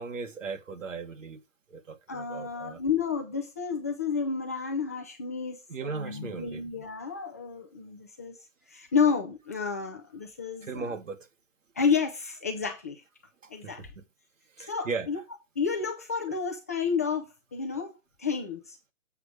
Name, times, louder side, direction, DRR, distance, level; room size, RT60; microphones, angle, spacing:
voice 1, 0.0-1.4 1.7-2.8 5.7-6.6 10.6-11.3 13.4-14.0 14.6-15.1, right 4 dB, 80° right, 1.9 m, -37 dB
voice 2, 2.1-8.4 8.7-11.0 11.8-13.0 13.5-13.9 14.7-15.2 15.6-18.8, left 5 dB, 15° left, 0.4 m, -31 dB
7.8 x 4.6 x 6.7 m
hypercardioid pair, 150°, 38 cm